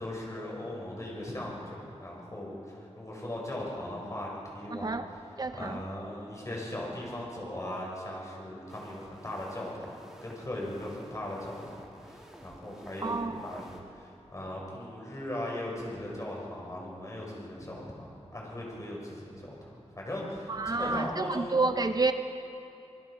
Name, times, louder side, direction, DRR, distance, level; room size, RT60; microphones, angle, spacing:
voice 1, 0.0-5.0 5.6-11.6 12.0-21.6, left 1 dB, 30° left, -3 dB, 6.1 m, -38 dB
voice 2, 4.7-5.1 5.4-5.8 13.0-13.6 20.5-22.1, right 3 dB, 35° right, 8 dB, 0.7 m, -29 dB
sound 1, 8.7-13.8, equal, 5° right, 2.9 m, -52 dB
28.0 x 19.5 x 5.0 m, 2.8 s
wide cardioid pair, 115°, 11 cm